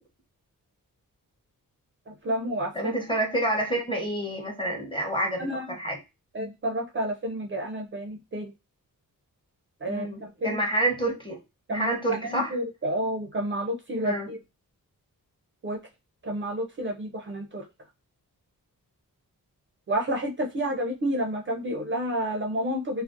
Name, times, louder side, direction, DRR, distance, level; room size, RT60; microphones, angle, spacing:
voice 1, 2.1-2.9 5.4-5.7 6.3-8.5 9.8-10.6 11.7-11.9 12.2-14.4 15.6-15.8 16.2-17.6 19.9-23.0, equal, 35° right, 1 dB, 0.4 m, -30 dB
voice 2, 2.7-6.0 9.9-11.4 11.7-12.6 14.0-14.3, right 1 dB, 15° left, 1 dB, 0.8 m, -28 dB
2.5 x 2.0 x 2.5 m, 0.25 s
wide cardioid pair, 95°, 35 cm